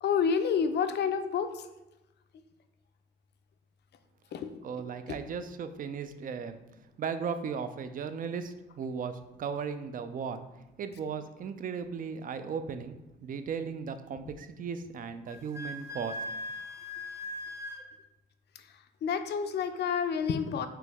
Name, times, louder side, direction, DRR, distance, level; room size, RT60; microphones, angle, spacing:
voice 1, 0.0-1.7 4.3-4.5 5.1-5.2 19.0-20.7, left 6 dB, 60° left, 9 dB, 0.5 m, -29 dB
voice 2, 4.6-6.6 7.0-10.4 10.8-13.0 13.2-16.2, right 6 dB, 45° right, 10 dB, 0.4 m, -36 dB
Wind instrument woodwind instrument, 15.3-17.9, left 2 dB, 15° right, 0.8 m, -39 dB
4.5 x 3.0 x 3.4 m, 0.99 s
cardioid pair, 90°, 20 cm